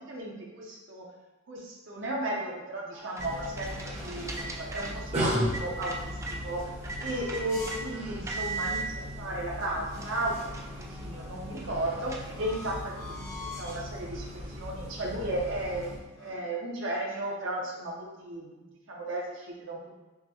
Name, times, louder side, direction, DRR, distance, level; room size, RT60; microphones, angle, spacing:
voice 1, 0.1-1.1 1.5-6.2 6.4-6.6 7.0-10.3 10.8-19.8, right 1 dB, 65° right, -3 dB, 0.8 m, -35 dB
sound 1, 2.9-6.4 6.8-7.8 8.3-8.8 9.5-9.6 9.9-12.8, right 3 dB, 15° right, 0.3 m, -39 dB
sound 2, 3.0-4.6 5.9-8.0 8.4-8.5 9.1-9.2 9.4-10.7 11.7-13.9 14.6-14.9 15.1-16.4, left 2 dB, 15° left, 0.8 m, -47 dB
sound 3, 3.2-16.0, equal, 30° right, 0.8 m, -37 dB
5.7 x 2.1 x 2.9 m, 1.1 s
head